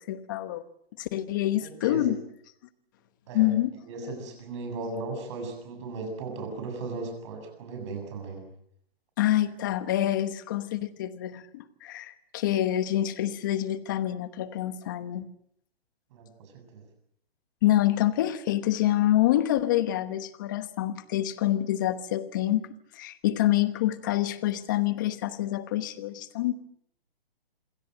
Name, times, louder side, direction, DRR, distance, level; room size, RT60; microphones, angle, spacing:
voice 1, 0.1-0.6 1.0-2.3 3.3-4.2 4.8-4.9 9.2-15.3 17.6-22.7 22.9-26.5, left 13 dB, 20° left, 14 dB, 1.1 m, -27 dB
voice 2, 1.6-2.1 3.3-3.5 3.9-8.5 16.1-16.8, right 3 dB, 30° right, 4 dB, 7.4 m, -37 dB
27.5 x 21.0 x 7.8 m, 0.69 s
hypercardioid pair, 165°, 30 cm